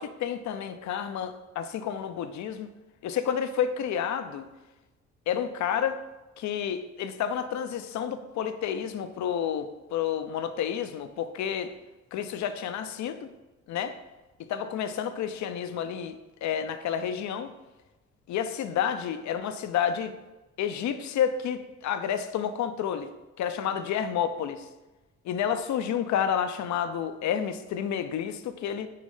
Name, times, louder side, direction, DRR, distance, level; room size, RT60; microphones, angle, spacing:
voice 1, 0.0-2.7 3.0-4.5 5.3-6.0 6.4-11.7 12.1-13.2 13.7-14.0 14.4-17.5 18.3-20.1 20.6-23.1 23.4-24.7 25.2-28.9, left 8 dB, 70° left, 11 dB, 0.6 m, -30 dB
6.5 x 3.2 x 5.5 m, 1.1 s
cardioid pair, 90°, 30 cm